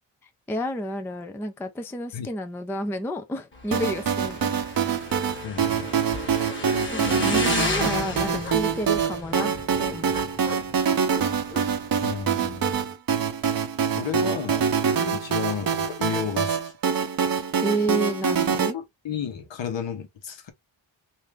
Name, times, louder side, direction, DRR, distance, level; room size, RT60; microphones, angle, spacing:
voice 1, 0.5-4.6 6.8-9.5 9.8-10.1 15.0-15.2 17.6-18.8, equal, 5° left, 0.3 m, -30 dB
Motorcycle / Engine, 3.5-12.7, left 2 dB, 25° left, 1.0 m, -33 dB
sound 1, 3.7-18.7, right 6 dB, 45° right, 0.7 m, -25 dB
voice 2, 5.4-5.9 12.0-12.9 13.9-14.6 15.1-16.7 18.7-20.5, left 7 dB, 65° left, 1.0 m, -32 dB
3.2 x 2.6 x 3.4 m
wide cardioid pair, 150°, 47 cm